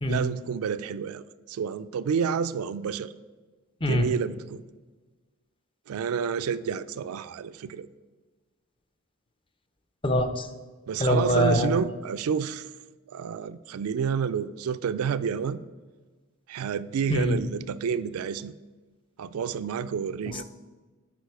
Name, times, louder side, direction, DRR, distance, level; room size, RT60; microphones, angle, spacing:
voice 1, 0.1-3.1 3.8-4.6 5.9-7.9 10.9-12.7 13.1-15.6 16.5-18.5 19.2-20.4, right 6 dB, 85° right, 0.4 m, -29 dB
voice 2, 10.0-10.5 11.0-11.7 17.1-17.4 20.3-20.4, equal, 25° left, 0.6 m, -23 dB
11.5 x 4.8 x 4.6 m
head